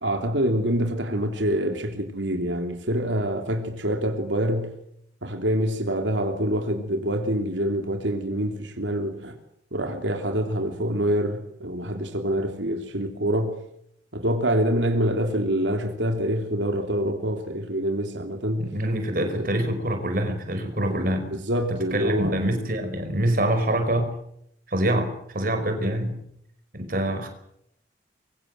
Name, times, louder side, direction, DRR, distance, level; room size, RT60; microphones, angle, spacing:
voice 1, 0.0-4.7 5.2-9.3 9.7-13.6 14.1-18.7 19.2-19.5 21.5-22.3, equal, 85° right, 3.2 m, -26 dB
voice 2, 18.6-21.3 21.7-24.1 24.7-25.1 25.3-26.2 26.7-27.3, right 1 dB, 50° right, 5.1 m, -25 dB
25.0 x 23.5 x 7.7 m
head